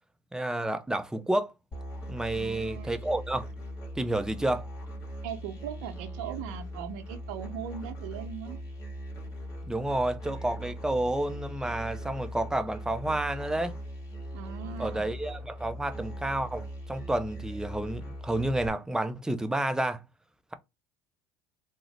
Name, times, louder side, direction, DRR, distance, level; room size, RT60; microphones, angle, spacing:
voice 1, 0.3-1.5 2.1-3.5 4.0-4.7 9.7-13.8 14.8-20.0, right 1 dB, 5° right, 0.5 m, -30 dB
Musical instrument, 1.7-18.7, equal, 35° left, 2.1 m, -40 dB
voice 2, 2.3-3.0 5.2-8.6 14.3-15.1, right 9 dB, 70° right, 0.7 m, -39 dB
3.6 x 2.1 x 3.2 m
hypercardioid pair, 70°, 9 cm